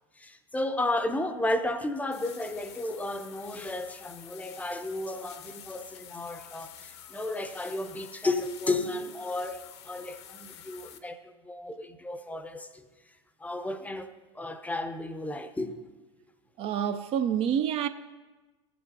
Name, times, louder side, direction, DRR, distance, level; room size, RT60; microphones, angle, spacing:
voice 1, 0.2-12.9 13.4-15.8, left 2 dB, 10° left, 0.6 m, -33 dB
sound 1, 2.1-11.0, left 9 dB, 65° left, 0.8 m, -49 dB
voice 2, 16.6-17.9, right 9 dB, 40° right, 0.4 m, -27 dB
15.5 x 7.7 x 2.7 m
hypercardioid pair, 80°, 15 cm